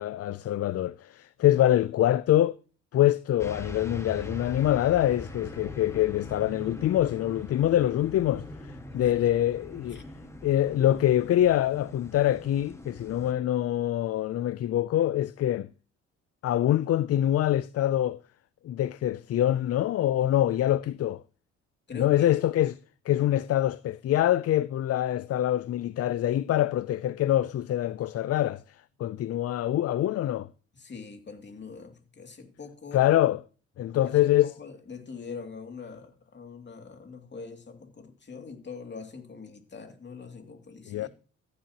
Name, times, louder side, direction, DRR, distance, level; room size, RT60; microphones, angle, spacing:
voice 1, 0.0-2.6 2.9-10.0 10.4-15.7 16.4-18.2 18.6-21.2 21.9-22.8 23.1-28.6 29.0-30.5 32.9-33.4 33.8-34.5 40.9-41.1, left 12 dB, 55° left, 0.5 m, -25 dB
sound 1, 3.4-13.3, equal, 10° left, 1.7 m, -42 dB
voice 2, 21.9-22.3 30.7-33.0 34.0-41.1, left 5 dB, 35° left, 2.6 m, -43 dB
15.0 x 9.6 x 2.9 m
cardioid pair, 90°, 30 cm